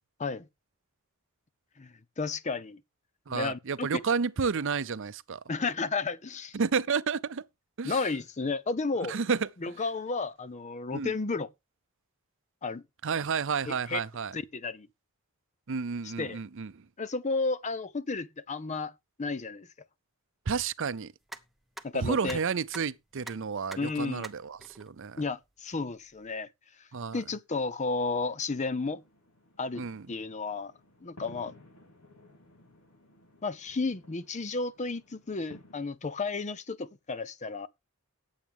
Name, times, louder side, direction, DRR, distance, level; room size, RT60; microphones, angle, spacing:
voice 1, 1.8-2.8 3.3-3.9 5.5-6.6 7.8-9.2 9.6-11.5 12.6-12.8 13.7-14.0 14.3-14.9 16.2-16.4 17.0-18.9 19.2-19.7 21.8-22.4 23.8-24.2 25.2-26.5 27.1-29.0 29.6-29.8 30.1-30.7 31.0-31.5 33.4-37.7, left 3 dB, 30° left, 0.6 m, -32 dB
voice 2, 3.3-5.4 6.5-7.4 7.8-8.0 8.9-9.7 10.9-11.1 13.0-14.3 15.7-16.9 20.5-21.1 21.9-25.2 26.9-27.2 29.8-30.1, right 5 dB, 60° right, 0.6 m, -31 dB
sound 1, 21.2-26.4, right 2 dB, ahead, 0.9 m, -49 dB
sound 2, 28.0-35.8, left 1 dB, 85° left, 4.7 m, -56 dB
17.5 x 7.3 x 3.6 m
head